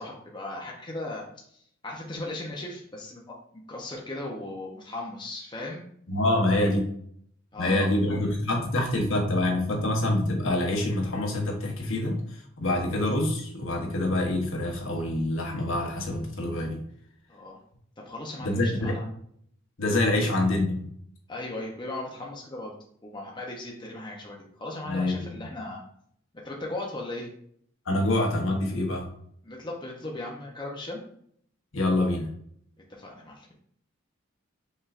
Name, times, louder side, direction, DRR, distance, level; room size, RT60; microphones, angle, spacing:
voice 1, 0.0-5.8 7.5-7.9 17.3-17.6 18.0-19.1 20.2-20.3 21.3-22.7 23.0-25.8 26.3-27.3 29.4-31.0 32.9-33.5, left 2 dB, 20° left, -2 dB, 0.8 m, -37 dB
voice 2, 6.1-6.9 7.6-16.8 18.4-19.0 19.8-20.9 24.9-25.2 27.9-29.1 31.7-32.3, left 1 dB, 70° left, 1 dB, 1.0 m, -26 dB
5.4 x 3.6 x 2.5 m, 0.65 s
head